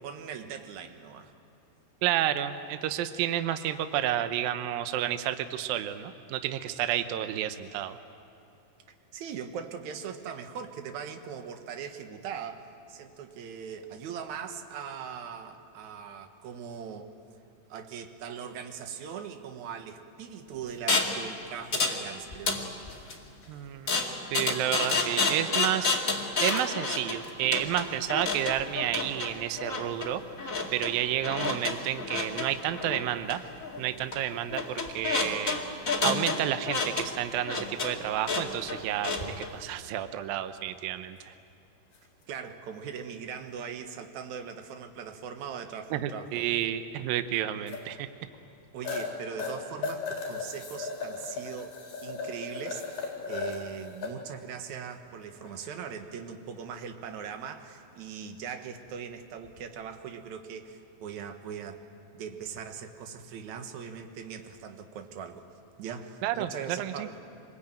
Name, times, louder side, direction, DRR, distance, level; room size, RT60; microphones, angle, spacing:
voice 1, 0.0-1.3 9.1-17.1 17.7-22.8 42.3-46.4 48.7-61.9 62.1-65.5 65.8-67.2, right 7 dB, 60° right, 6 dB, 2.3 m, -40 dB
voice 2, 2.0-8.0 23.5-23.9 24.3-26.0 26.4-33.4 33.8-35.6 36.0-41.3 45.9-48.1 66.2-67.1, right 12 dB, 75° right, 9 dB, 2.3 m, -30 dB
sound 1, 20.9-21.2 21.7-22.0 22.3-23.1 23.9-39.5, left 3 dB, 30° left, 1.6 m, -30 dB
sound 2, 41.9-42.1 44.6-44.7 47.7-47.8 48.3-48.4 48.8-49.1 49.4-54.1 54.6-54.8 55.4-55.9 59.4-59.6, left 4 dB, 55° left, 5.4 m, -36 dB
26.5 x 21.0 x 9.0 m, 2.9 s
omnidirectional pair, 4.8 m